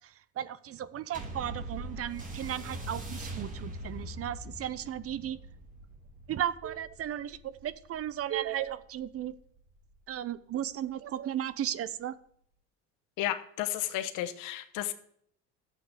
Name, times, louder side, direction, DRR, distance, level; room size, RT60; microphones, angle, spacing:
voice 1, 0.4-5.4 6.3-9.3 10.1-12.1, right 11 dB, 45° right, 16 dB, 0.8 m, -35 dB
sound 1, 1.1-9.9 10.7-10.8, right 1 dB, 25° right, 2.9 m, -43 dB
voice 2, 13.2-14.9, left 13 dB, 75° left, 11 dB, 1.2 m, -33 dB
12.0 x 7.9 x 6.8 m, 0.67 s
supercardioid pair, 90°, 32 cm